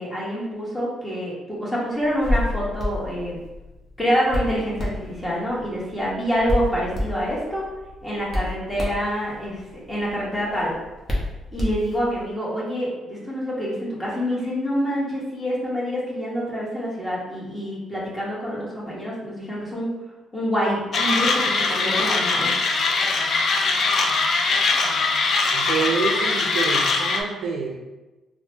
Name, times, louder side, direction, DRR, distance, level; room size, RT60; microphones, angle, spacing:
voice 1, 0.0-3.4 4.0-7.6 8.0-9.6 9.9-10.7 11.5-19.9 20.3-22.5, equal, 10° left, -6 dB, 1.3 m, -26 dB
Hands, 2.0-12.3, left 1 dB, 30° left, 1.0 m, -30 dB
Mechanisms, 20.9-27.2, left 3 dB, 60° left, 0.4 m, -21 dB
voice 2, 25.5-27.7, right 5 dB, 85° right, -1 dB, 0.4 m, -27 dB
3.8 x 2.1 x 2.8 m, 1.1 s
cardioid pair, 90°, 0 cm